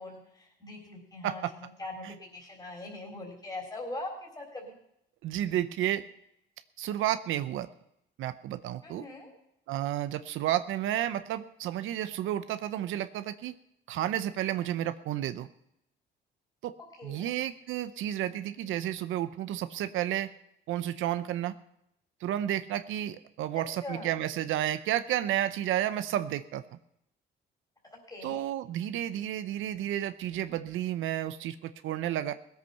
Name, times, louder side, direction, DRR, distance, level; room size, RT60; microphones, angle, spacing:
voice 1, 0.0-4.1 4.4-4.8 8.8-9.3 17.0-17.3 23.8-24.1 27.9-28.4, left 2 dB, 20° left, -1 dB, 3.9 m, -42 dB
voice 2, 5.2-6.0 6.8-7.7 8.2-9.1 9.7-13.5 13.9-15.5 16.6-16.7 17.0-20.3 20.7-21.5 22.2-26.6 28.2-32.3, right 12 dB, 85° right, 11 dB, 0.6 m, -31 dB
18.0 x 8.2 x 5.6 m, 0.79 s
cardioid pair, 90°, 20 cm